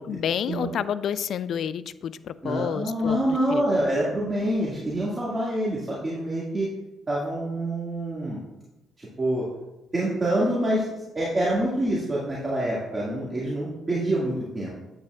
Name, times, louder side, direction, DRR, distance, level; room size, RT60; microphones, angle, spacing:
voice 1, 0.0-3.2 3.5-3.6, left 8 dB, 65° left, 15 dB, 0.3 m, -29 dB
voice 2, 2.4-6.7 7.1-8.4 9.0-9.5 9.9-10.9 11.1-14.7, right 1 dB, 25° right, -6 dB, 1.9 m, -26 dB
8.9 x 8.4 x 2.4 m, 1.0 s
cardioid pair, 90°, 0 cm